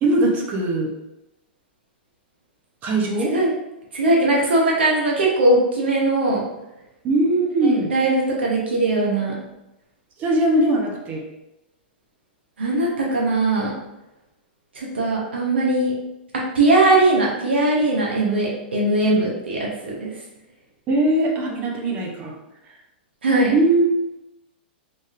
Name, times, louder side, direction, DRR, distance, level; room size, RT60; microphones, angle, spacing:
voice 1, 0.0-0.9 2.8-3.4 7.0-7.9 10.2-11.2 20.9-22.4 23.5-23.9, right 2 dB, 30° right, 0 dB, 0.6 m, -20 dB
voice 2, 3.2-3.5 3.9-6.4 7.6-9.3 12.6-13.7 14.7-15.9 16.3-20.1 23.2-23.5, right 2 dB, 90° right, -3 dB, 0.8 m, -20 dB
3.3 x 2.6 x 2.4 m, 0.93 s
hypercardioid pair, 125°, 6 cm